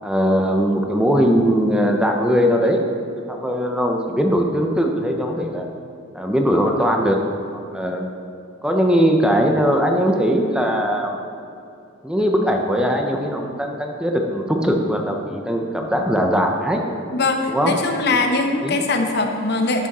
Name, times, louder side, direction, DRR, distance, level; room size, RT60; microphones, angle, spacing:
voice 1, 0.0-2.8 3.3-5.6 6.1-7.2 7.7-8.1 8.6-11.2 12.0-16.8 17.5-17.8 18.6-18.8, equal, 5° right, 2 dB, 0.6 m, -20 dB
voice 2, 17.1-19.9, left 3 dB, 50° left, 4 dB, 0.8 m, -21 dB
12.0 x 6.2 x 4.2 m, 2.5 s
head